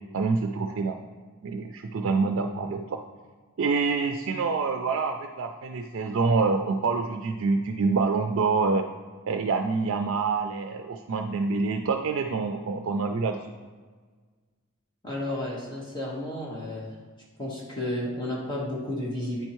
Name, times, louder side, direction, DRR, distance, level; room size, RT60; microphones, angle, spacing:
voice 1, 0.1-1.0 1.4-3.0 3.6-8.8 9.3-13.4, right 4 dB, 65° right, 4 dB, 0.4 m, -26 dB
voice 2, 15.0-16.9 17.4-19.4, left 1 dB, 20° left, -5 dB, 1.2 m, -32 dB
9.1 x 4.4 x 3.0 m, 1.5 s
head